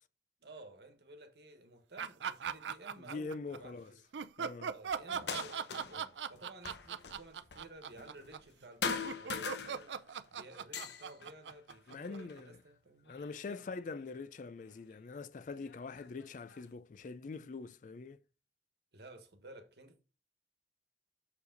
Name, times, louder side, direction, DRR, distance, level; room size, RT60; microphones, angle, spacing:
voice 1, 0.4-4.0 4.7-10.1 10.3-13.7 18.9-20.0, right 1 dB, 70° right, 1.4 m, -54 dB
sound 1, 2.0-3.6 4.1-12.4, right 7 dB, 85° right, 0.5 m, -40 dB
voice 2, 3.0-3.9 4.4-4.7 11.9-12.6 13.1-18.2, left 4 dB, 45° left, 0.4 m, -44 dB
sound 2, 5.1-6.1 6.3-8.5 8.8-10.2 10.5-12.4 13.1-14.0 14.9-15.0 15.6-16.7, left 5 dB, 75° left, 0.7 m, -42 dB
6.7 x 4.8 x 3.9 m
head